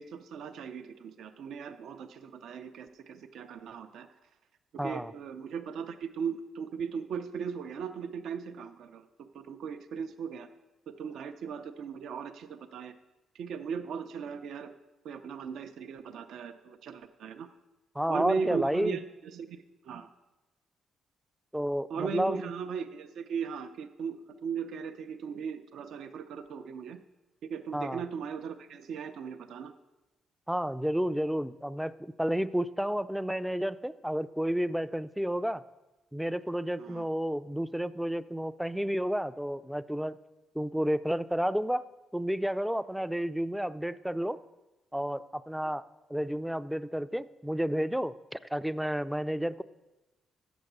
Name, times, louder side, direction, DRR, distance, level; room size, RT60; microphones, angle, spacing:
voice 1, 0.0-4.1 4.7-10.5 10.9-12.9 13.3-14.7 15.0-17.5 18.1-20.1 21.9-27.0 27.5-29.7 36.8-37.0, right 6 dB, 70° right, 7 dB, 0.4 m, -38 dB
voice 2, 4.8-5.1 18.0-19.0 21.5-22.5 27.7-28.0 30.5-35.6 36.1-40.2 40.6-41.9 42.1-44.4 44.9-45.8 46.1-49.6, equal, ahead, 14 dB, 0.3 m, -31 dB
7.0 x 6.9 x 6.6 m, 1.1 s
cardioid pair, 90°, 0 cm